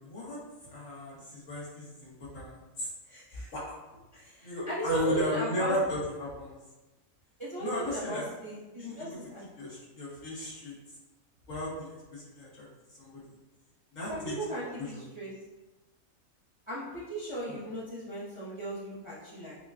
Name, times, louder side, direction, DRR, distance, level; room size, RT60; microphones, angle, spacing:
voice 1, 0.0-2.9 3.5-3.8 4.4-6.6 7.6-8.2 8.8-9.2 9.6-10.8 11.5-12.6 13.0-13.2 13.9-14.4 14.8-15.0 17.5-17.6, left 1 dB, 65° left, -8 dB, 1.6 m, -35 dB
voice 2, 3.1-3.5 4.1-5.7 7.4-9.4 14.1-15.3 16.7-19.6, right 1 dB, 30° right, -9 dB, 0.7 m, -36 dB
5.7 x 2.2 x 2.5 m, 1.1 s
omnidirectional pair, 1.5 m